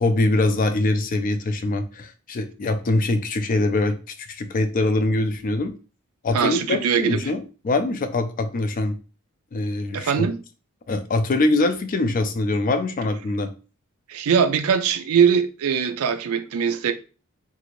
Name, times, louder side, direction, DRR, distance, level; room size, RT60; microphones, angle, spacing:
voice 1, 0.0-5.7 6.2-9.0 9.5-10.1 10.9-13.5, left 2 dB, 40° left, 0.4 m, -23 dB
voice 2, 6.3-7.2 9.9-10.4 14.1-16.9, right 7 dB, 80° right, 0.4 m, -21 dB
2.7 x 2.4 x 3.0 m
head